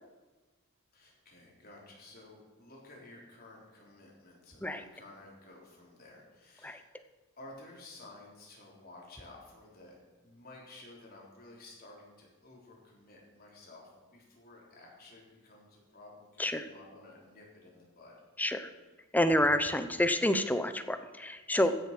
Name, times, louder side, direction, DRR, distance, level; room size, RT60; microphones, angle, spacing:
voice 1, 0.9-6.9 7.4-9.9 10.2-18.2 18.5-18.8 21.5-21.8, left 2 dB, 45° left, -3 dB, 3.6 m, -53 dB
voice 2, 18.4-18.7 19.1-21.7, left 1 dB, 10° left, 9 dB, 0.7 m, -28 dB
15.5 x 7.0 x 5.9 m, 1.2 s
head